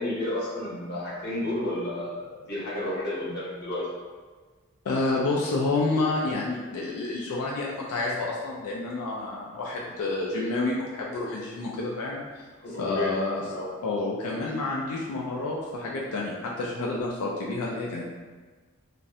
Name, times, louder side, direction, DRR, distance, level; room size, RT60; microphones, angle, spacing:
voice 1, 0.0-3.8 12.6-13.1 13.5-13.7, left 1 dB, 50° left, -8 dB, 0.8 m, -31 dB
voice 2, 4.9-12.4 12.8-13.4 13.8-18.1, left 2 dB, 90° left, -4 dB, 0.4 m, -29 dB
2.4 x 2.0 x 2.6 m, 1.4 s
head